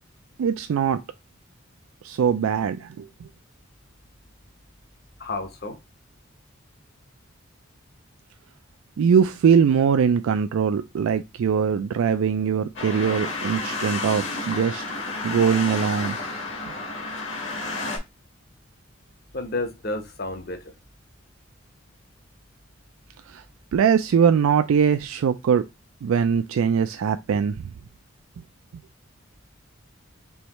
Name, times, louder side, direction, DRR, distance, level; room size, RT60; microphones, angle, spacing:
voice 1, 0.4-1.0 2.0-3.1 9.0-14.8 15.2-16.2 23.3-23.4 23.7-25.7 26.0-27.6, right 7 dB, 85° right, 0.3 m, -21 dB
voice 2, 5.2-5.8 19.3-20.7, left 2 dB, 50° left, 0.8 m, -31 dB
sound 1, 12.8-18.0, left 3 dB, 65° left, 1.5 m, -31 dB
4.7 x 3.1 x 3.0 m
head